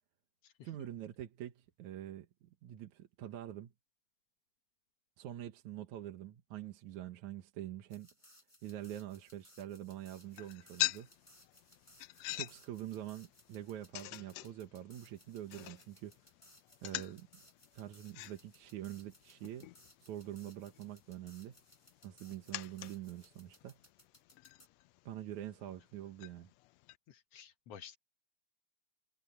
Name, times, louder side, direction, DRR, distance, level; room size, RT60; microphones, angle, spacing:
voice 1, 0.6-3.7 5.2-8.1 8.6-11.1 12.3-16.2 16.8-17.4 17.7-19.7 20.0-21.6 22.0-23.8 25.1-26.5, right 12 dB, 70° right, 2.5 m, -45 dB
sound 1, 7.9-24.7, left 1 dB, 10° left, 7.9 m, -64 dB
sound 2, 10.2-27.0, left 18 dB, 85° left, 1.5 m, -46 dB
voice 2, 27.1-28.0, left 8 dB, 60° left, 1.9 m, -53 dB
omnidirectional pair, 3.6 m